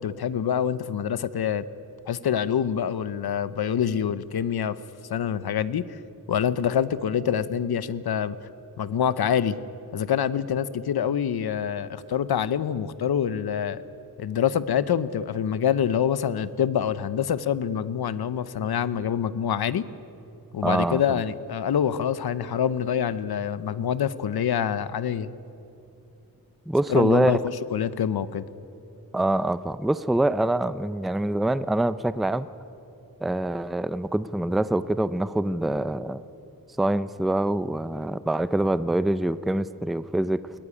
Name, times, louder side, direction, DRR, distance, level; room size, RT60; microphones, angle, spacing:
voice 1, 0.0-1.6 2.1-4.8 5.1-5.8 6.3-8.4 8.8-9.6 9.9-13.8 14.2-19.8 20.5-25.3 26.9-28.4, left 8 dB, 90° left, 15 dB, 0.8 m, -26 dB
voice 2, 20.6-21.2 26.7-27.4 29.1-32.5 33.2-36.2 36.8-40.5, right 1 dB, ahead, 14 dB, 0.4 m, -25 dB
21.0 x 17.0 x 9.9 m, 2.8 s
wide cardioid pair, 125°, 37 cm